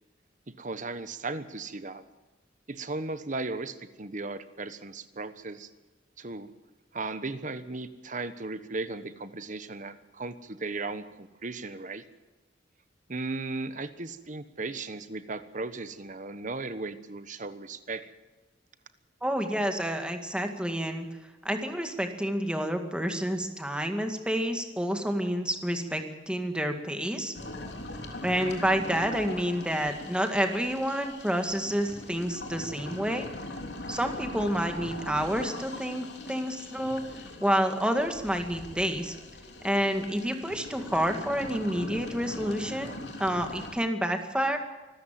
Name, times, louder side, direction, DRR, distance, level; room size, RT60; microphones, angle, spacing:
voice 1, 0.5-2.0 2.7-5.7 6.2-6.5 6.9-12.0 13.1-18.1, right 3 dB, 45° right, 12 dB, 1.2 m, -36 dB
voice 2, 19.2-21.1 21.4-27.3 28.2-33.3 33.9-37.0 37.4-39.1 39.6-44.6, equal, 5° right, 5 dB, 2.1 m, -29 dB
sound 1, 27.3-43.7, left 1 dB, 70° left, 3.4 m, -41 dB
25.5 x 13.5 x 7.7 m, 1.2 s
head